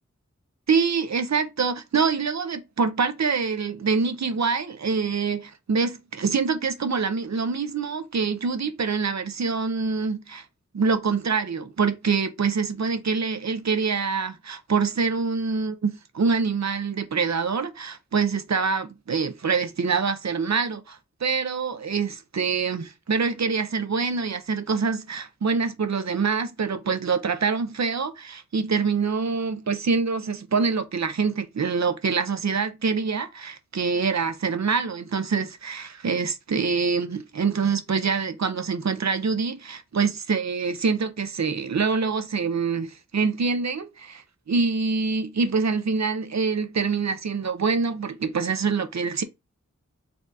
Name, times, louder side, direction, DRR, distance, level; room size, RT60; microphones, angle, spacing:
voice 1, 0.7-10.4 10.7-49.2, right 5 dB, 65° right, 0.6 m, -25 dB
4.3 x 2.4 x 3.9 m
wide cardioid pair, 70°, 29 cm